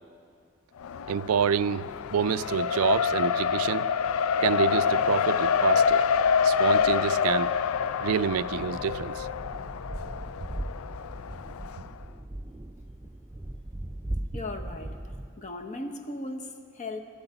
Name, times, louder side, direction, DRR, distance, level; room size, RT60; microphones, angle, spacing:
Race car auto racing, 0.8-11.8, left 6 dB, 80° left, 0.4 m, -26 dB
voice 1, 1.1-3.9 4.4-6.0 6.4-7.5 8.0-9.3, right 7 dB, 85° right, 17 dB, 0.3 m, -27 dB
sound 1, 5.8-15.3, right 1 dB, 10° right, 0.4 m, -39 dB
voice 2, 14.3-17.0, left 2 dB, 35° left, 5 dB, 0.9 m, -37 dB
12.0 x 8.0 x 9.9 m, 2.4 s
head